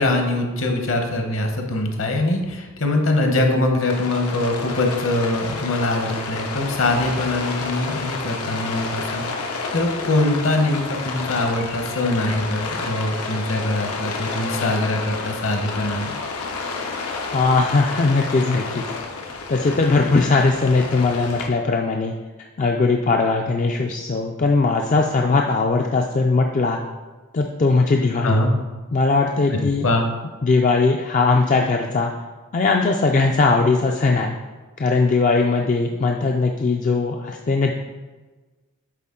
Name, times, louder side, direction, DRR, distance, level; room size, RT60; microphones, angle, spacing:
voice 1, 0.0-16.1 28.2-28.5 29.5-30.1, left 2 dB, 60° left, 3 dB, 0.9 m, -23 dB
Rain, 3.9-21.5, left 4 dB, 90° left, 0.8 m, -30 dB
voice 2, 17.3-18.8 19.5-22.1 22.6-26.8 27.3-28.4 28.9-29.9 30.4-32.1 32.5-34.3 34.8-37.7, left 3 dB, 35° left, 2 dB, 0.3 m, -19 dB
8.4 x 3.8 x 3.7 m, 1.3 s
head